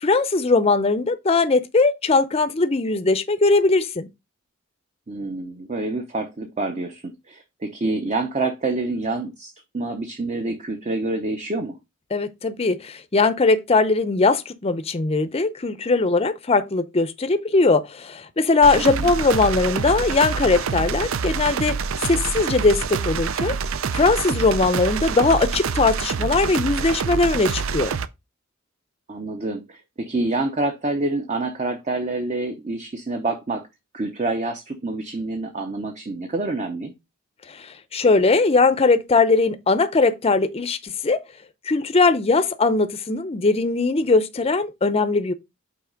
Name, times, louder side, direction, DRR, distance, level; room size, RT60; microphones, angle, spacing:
voice 1, 0.0-4.1 12.1-21.8 22.0-23.6 23.9-27.9 37.6-37.7 37.9-41.2 41.7-45.3, left 3 dB, 30° left, 0.6 m, -20 dB
voice 2, 5.1-11.8 18.7-19.1 29.1-33.7 33.9-36.9, right 2 dB, 35° right, 0.7 m, -27 dB
sound 1, 18.6-28.1, right 5 dB, 75° right, 0.5 m, -26 dB
5.7 x 4.0 x 5.1 m
head